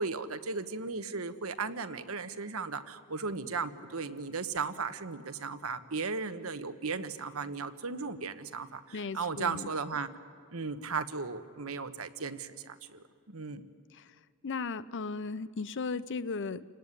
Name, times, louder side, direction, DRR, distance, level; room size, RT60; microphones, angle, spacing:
voice 1, 0.0-10.1 10.5-13.0 13.3-13.7, right 4 dB, 75° right, 10 dB, 1.2 m, -36 dB
voice 2, 8.9-9.7 13.9-14.1 14.4-16.6, left 4 dB, 60° left, 15 dB, 0.7 m, -36 dB
28.5 x 18.5 x 9.8 m, 2.3 s
head